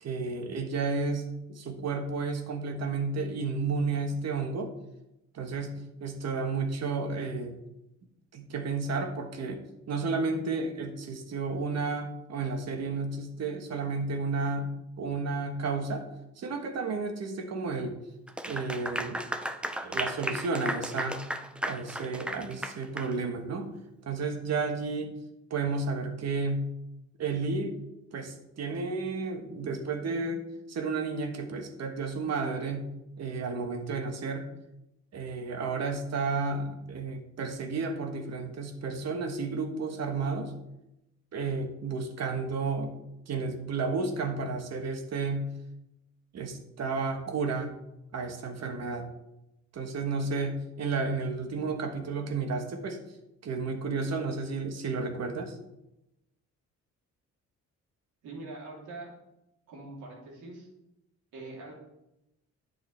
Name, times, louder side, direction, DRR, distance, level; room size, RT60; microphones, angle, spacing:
voice 1, 0.0-4.7 5.3-7.6 8.3-16.0 16.4-18.0 18.4-19.2 19.8-21.2 21.7-23.7 24.1-25.1 25.5-26.6 27.2-27.8 28.1-32.9 33.2-34.5 35.1-40.5 41.3-42.9 43.3-45.5 46.3-47.7 48.1-49.0 49.7-53.0 53.4-55.5, right 4 dB, 60° right, 5 dB, 1.4 m, -32 dB
Clapping / Applause, 18.3-23.1, right 1 dB, 5° right, 0.6 m, -35 dB
voice 2, 58.2-59.1 59.7-60.7 61.3-61.7, right 2 dB, 85° right, -3 dB, 3.3 m, -43 dB
10.5 x 6.7 x 3.4 m, 0.89 s
cardioid pair, 90°, 30 cm